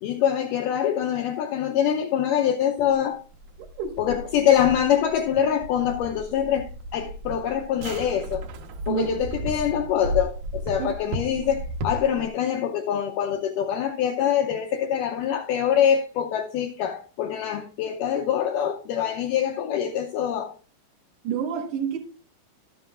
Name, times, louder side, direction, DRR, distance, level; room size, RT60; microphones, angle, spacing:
voice 1, 0.0-3.2 4.0-8.5 8.9-20.5, left 9 dB, 85° left, 5 dB, 1.9 m, -24 dB
sound 1, 2.8-12.3, equal, 65° right, 2.0 m, -35 dB
voice 2, 3.6-4.0 8.9-9.1 10.8-10.9 21.2-22.0, right 8 dB, 85° right, -4 dB, 3.5 m, -28 dB
12.5 x 11.0 x 2.4 m, 0.37 s
omnidirectional pair, 4.5 m